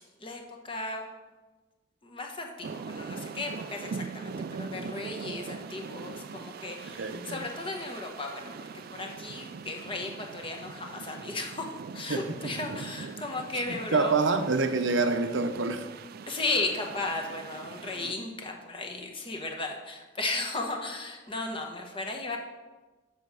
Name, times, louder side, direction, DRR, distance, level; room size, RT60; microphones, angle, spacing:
voice 1, 0.2-1.1 2.0-14.4 16.3-22.4, left 2 dB, 30° left, 2 dB, 1.0 m, -35 dB
sound 1, 2.6-18.2, right 5 dB, 50° right, 0.3 m, -42 dB
voice 2, 7.0-7.5 12.1-12.2 13.9-15.8, right 4 dB, 85° right, 7 dB, 0.7 m, -26 dB
6.9 x 6.7 x 4.8 m, 1.2 s
head